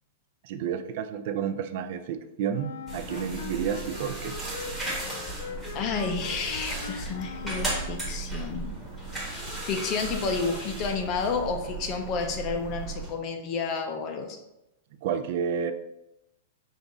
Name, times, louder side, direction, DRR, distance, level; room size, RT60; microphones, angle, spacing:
voice 1, 0.4-4.4 15.0-15.7, right 8 dB, 45° right, 9 dB, 0.3 m, -30 dB
Wind instrument woodwind instrument, 2.5-8.2, left 5 dB, 75° left, 0.5 m, -41 dB
sound 1, 2.9-13.1, right 2 dB, ahead, 1.1 m, -35 dB
voice 2, 5.7-8.7 9.3-14.4, left 5 dB, 25° left, 4 dB, 0.4 m, -31 dB
5.2 x 2.4 x 3.9 m, 0.90 s
supercardioid pair, 170°, 0 cm